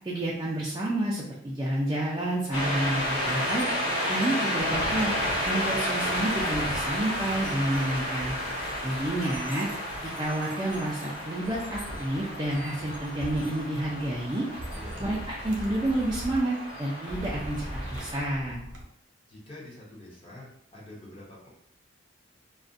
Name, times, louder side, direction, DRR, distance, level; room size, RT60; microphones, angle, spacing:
voice 1, 0.0-3.6 4.1-5.1 5.5-8.3 8.8-9.7 10.2-14.5 15.0-17.7 17.9-18.7, right 1 dB, 20° right, -5 dB, 0.3 m, -29 dB
sound 1, 2.5-18.3, equal, 80° left, 1.2 m, -32 dB
sound 2, 11.9-12.0 13.2-13.4 14.6-16.4 17.1-18.8, right 1 dB, 65° right, 0.6 m, -38 dB
voice 2, 14.7-15.0 19.3-21.5, left 1 dB, 25° left, -5 dB, 0.7 m, -46 dB
2.4 x 2.1 x 2.5 m, 0.71 s
head